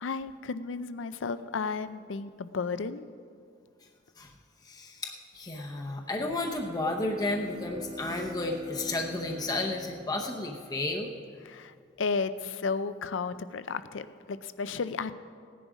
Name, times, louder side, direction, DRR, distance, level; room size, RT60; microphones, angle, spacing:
voice 1, 0.0-3.1 11.4-15.1, left 4 dB, 75° left, 13 dB, 0.5 m, -33 dB
voice 2, 4.6-11.1, left 2 dB, 20° left, 1 dB, 0.7 m, -32 dB
Bowed string instrument, 6.1-11.1, equal, 25° right, 1.3 m, -43 dB
16.5 x 10.0 x 5.0 m, 2.2 s
head